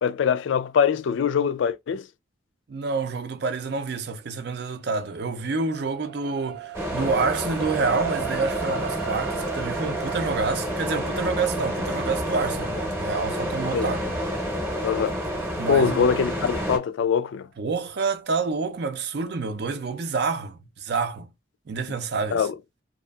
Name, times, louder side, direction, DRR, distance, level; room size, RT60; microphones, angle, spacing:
voice 1, 0.0-2.1 13.7-13.9 14.8-15.2 15.7-17.5 22.3-22.5, left 7 dB, 75° left, 0.3 m, -23 dB
voice 2, 2.7-14.2 15.6-16.1 17.6-21.3 21.7-22.5, right 4 dB, 55° right, 0.4 m, -28 dB
sound 1, 5.0-17.4 17.9-18.1, right 10 dB, 85° right, 0.7 m, -39 dB
sound 2, 6.7-16.8, equal, 15° right, 0.7 m, -29 dB
2.7 x 2.4 x 2.3 m
head